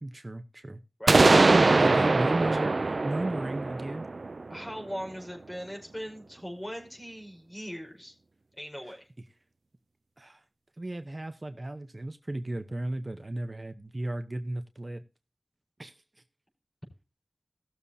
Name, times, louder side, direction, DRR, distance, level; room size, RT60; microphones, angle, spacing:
voice 1, 0.0-0.8 1.2-4.1 10.2-10.4 10.8-15.0 15.8-16.0, right 1 dB, 45° right, 8 dB, 0.9 m, -34 dB
sound 1, 1.1-4.9, right 3 dB, 75° right, 0.4 m, -22 dB
voice 2, 4.5-8.1 8.6-9.1, equal, 25° left, 2 dB, 4.9 m, -39 dB
18.0 x 7.0 x 2.8 m, 0.32 s
wide cardioid pair, 45°, 0 cm